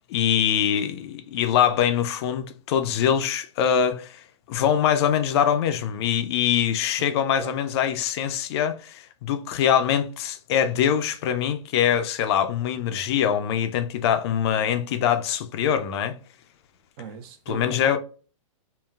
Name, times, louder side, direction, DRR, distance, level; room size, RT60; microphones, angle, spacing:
voice 1, 0.1-16.2 17.5-18.0, left 9 dB, 50° left, 0.4 m, -23 dB
voice 2, 17.0-18.0, right 6 dB, 45° right, 0.6 m, -38 dB
3.8 x 2.1 x 2.3 m
hypercardioid pair, 125°, 17 cm